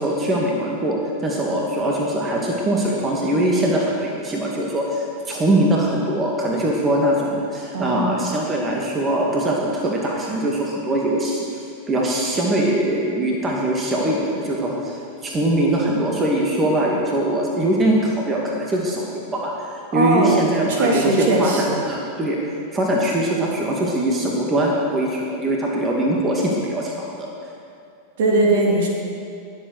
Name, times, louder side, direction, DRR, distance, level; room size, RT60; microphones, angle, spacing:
voice 1, 0.0-22.4 22.7-27.3, right 1 dB, 20° right, -2 dB, 2.3 m, -22 dB
voice 2, 7.7-8.2 19.9-20.3 20.7-21.8 28.2-28.9, right 2 dB, 55° right, -1 dB, 3.2 m, -19 dB
22.0 x 8.2 x 6.5 m, 2.5 s
figure-of-eight pair, 90°, 0 cm